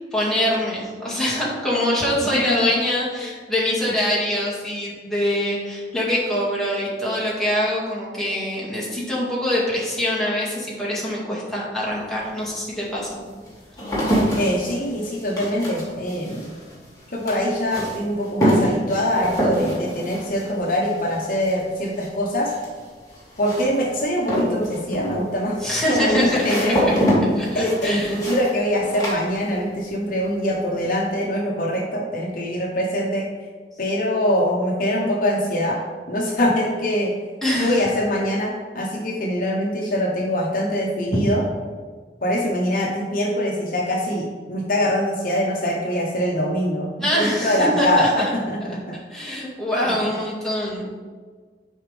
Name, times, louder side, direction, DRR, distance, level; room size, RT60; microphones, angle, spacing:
voice 1, 0.1-13.2 25.6-26.9 27.3-28.2 37.4-37.9 41.1-41.2 47.0-48.3 49.1-50.8, left 1 dB, 5° left, -7 dB, 2.1 m, -24 dB
sound 1, 11.9-12.0 12.7-29.9 30.2-30.8, equal, 20° left, 2.4 m, -26 dB
voice 2, 14.4-16.5 17.1-22.5 23.4-25.6 25.9-27.1 27.5-33.3 33.8-35.8 36.1-37.1 37.6-41.4 42.2-49.0 49.8-50.1, equal, 50° left, -1 dB, 1.0 m, -23 dB
11.0 x 4.9 x 3.5 m, 1.5 s
head